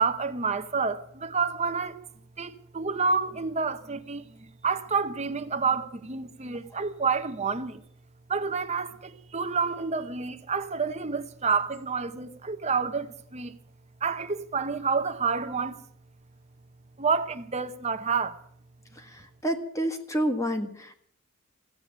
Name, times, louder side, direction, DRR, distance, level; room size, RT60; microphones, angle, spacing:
voice 1, 0.0-2.0 2.4-7.8 8.3-13.5 14.0-15.8 17.0-18.4, right 5 dB, 30° right, 0.8 m, -29 dB
voice 2, 19.0-21.0, equal, 15° left, 1.5 m, -29 dB
15.5 x 8.4 x 10.0 m
head